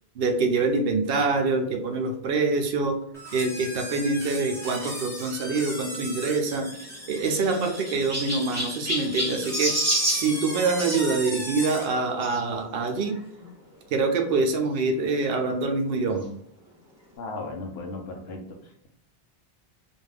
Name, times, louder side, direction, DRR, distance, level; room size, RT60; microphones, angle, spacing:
voice 1, 0.2-3.0 3.3-6.7 7.1-9.8 10.0-13.2 13.9-16.3, right 3 dB, 70° right, 3 dB, 0.7 m, -25 dB
sound 1, 3.1-12.0, equal, 5° left, 0.7 m, -37 dB
Chirp tweet, 6.7-11.0 12.2-12.4 13.1-13.2 13.4-13.5 14.8-14.9, equal, 15° right, 1.0 m, -29 dB
voice 2, 17.2-18.9, left 2 dB, 85° left, 2 dB, 0.9 m, -36 dB
2.6 x 2.3 x 3.3 m, 0.68 s
omnidirectional pair, 1.0 m